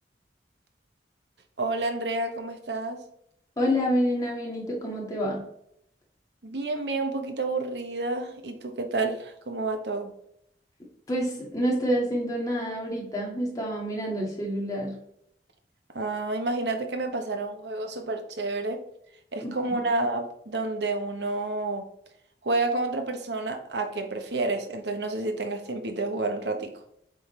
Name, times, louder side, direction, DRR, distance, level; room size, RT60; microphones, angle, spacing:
voice 1, 1.6-3.0 6.4-10.1 15.9-18.8 19.3-21.9 22.4-26.7, right 2 dB, 75° right, 5 dB, 1.1 m, -29 dB
voice 2, 3.6-5.4 11.1-15.0 19.4-19.8, equal, 20° left, -3 dB, 2.0 m, -28 dB
7.7 x 3.9 x 3.3 m, 0.74 s
head